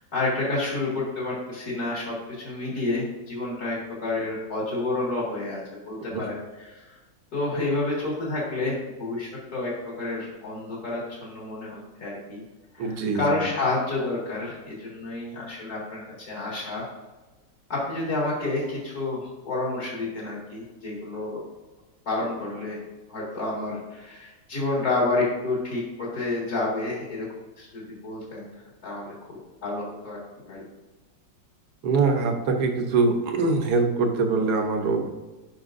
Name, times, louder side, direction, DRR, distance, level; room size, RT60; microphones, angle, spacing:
voice 1, 0.1-7.0 7.3-12.4 12.7-16.8 17.7-21.4 22.1-22.8 23.1-27.3 27.6-28.5 28.8-30.2 30.4-30.6, left 2 dB, 55° left, -5 dB, 2.6 m, -29 dB
voice 2, 12.8-13.2 31.8-35.1, right 4 dB, 65° right, 3 dB, 1.5 m, -23 dB
12.5 x 5.7 x 2.6 m, 1.2 s
omnidirectional pair, 1.9 m